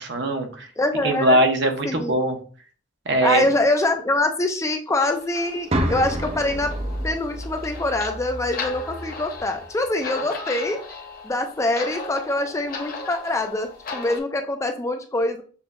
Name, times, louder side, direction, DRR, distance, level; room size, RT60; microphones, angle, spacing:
voice 1, 0.0-0.7 1.0-2.4 3.1-3.4, right 1 dB, 65° right, 4 dB, 0.8 m, -21 dB
voice 2, 0.8-1.4 1.8-2.1 3.2-6.7 7.0-10.8 11.2-15.4, left 2 dB, 15° left, 5 dB, 0.4 m, -24 dB
sound 1, 5.0-14.2, left 4 dB, 50° left, 0.8 m, -37 dB
sound 2, 5.7-9.7, right 1 dB, 35° right, 0.6 m, -29 dB
6.8 x 2.6 x 2.2 m, 0.41 s
head